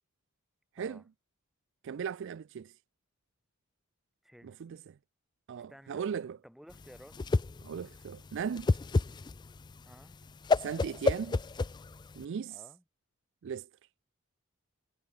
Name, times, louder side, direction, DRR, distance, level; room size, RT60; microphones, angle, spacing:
voice 1, 1.8-2.7 4.4-5.0 5.5-6.4 7.6-8.8 10.6-11.4 12.2-12.6 13.4-13.7, right 7 dB, 60° right, 0.4 m, -37 dB
voice 2, 4.2-4.8 5.7-7.2 9.8-10.2 12.5-12.8, equal, ahead, 4.4 m, -55 dB
Whoosh swoosh swish, 6.7-12.2, left 3 dB, 20° left, 0.3 m, -30 dB
head